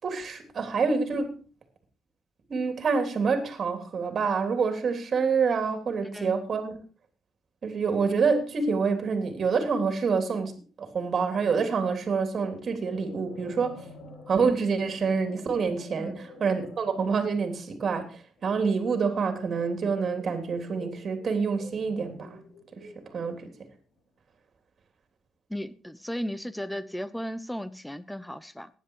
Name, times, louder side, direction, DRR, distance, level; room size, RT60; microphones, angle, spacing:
voice 1, 0.0-1.4 2.5-6.8 7.6-10.5 10.8-13.8 14.3-22.4 22.7-23.5, right 5 dB, 45° right, 3.3 m, -27 dB
sound 1, 12.4-23.8, left 2 dB, 70° left, 4.1 m, -48 dB
voice 2, 25.5-28.7, equal, 5° left, 1.0 m, -35 dB
15.5 x 10.5 x 4.8 m
cardioid pair, 125°, 0 cm